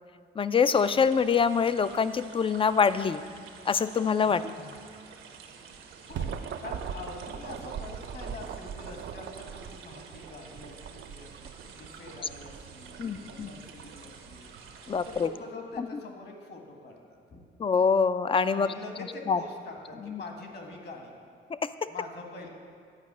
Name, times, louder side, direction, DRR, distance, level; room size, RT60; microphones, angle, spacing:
voice 1, 0.4-3.2 3.7-4.7 13.0-13.5 14.9-15.3 15.8-15.9 17.6-18.7 19.3-19.4 20.1-20.2 21.5-21.9, left 6 dB, 25° left, 13 dB, 0.4 m, -25 dB
sound 1, 0.7-15.3, right 6 dB, 85° right, 1.2 m, -50 dB
sound 2, 5.7-15.2, right 7 dB, 65° right, 0.6 m, -41 dB
voice 2, 6.6-14.5 15.1-17.4 18.5-21.1 21.9-22.5, left 3 dB, 55° left, 2 dB, 1.8 m, -44 dB
10.5 x 5.3 x 8.4 m, 2.2 s
cardioid pair, 90°, 20 cm